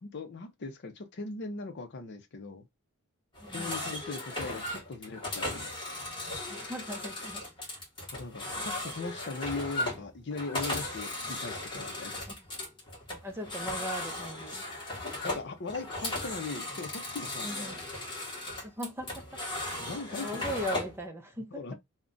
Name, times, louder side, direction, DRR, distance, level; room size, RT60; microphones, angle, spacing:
voice 1, 0.0-2.7 3.5-5.7 8.2-12.2 15.2-17.7 19.8-20.5 21.5-21.7, left 3 dB, 50° left, 0.6 m, -39 dB
sound 1, 3.3-21.0, left 2 dB, 20° left, 1.0 m, -37 dB
voice 2, 3.4-3.8 6.5-7.8 12.3-12.4 13.2-14.6 17.4-17.8 18.6-19.2 19.9-21.6, equal, 10° right, 0.5 m, -39 dB
2.4 x 2.1 x 3.7 m
head